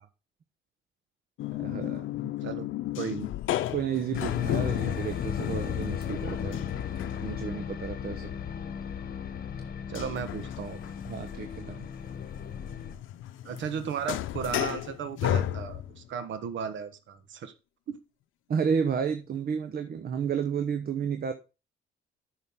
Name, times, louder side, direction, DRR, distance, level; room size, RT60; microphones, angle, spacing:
sound 1, 1.4-7.7 9.9-16.1, left 12 dB, 80° left, 0.7 m, -34 dB
voice 1, 1.5-2.1 3.7-6.6 7.2-8.3 11.1-11.9 18.5-21.3, right 7 dB, 50° right, 8 dB, 1.0 m, -31 dB
voice 2, 2.4-2.7 3.0-3.3 9.9-10.8 13.4-17.5 17.9-18.0, right 7 dB, 70° right, 10 dB, 1.3 m, -35 dB
sound 2, 4.1-12.9, left 7 dB, 50° left, 1.0 m, -37 dB
9.6 x 6.4 x 3.6 m, 0.30 s
cardioid pair, 90°, 20 cm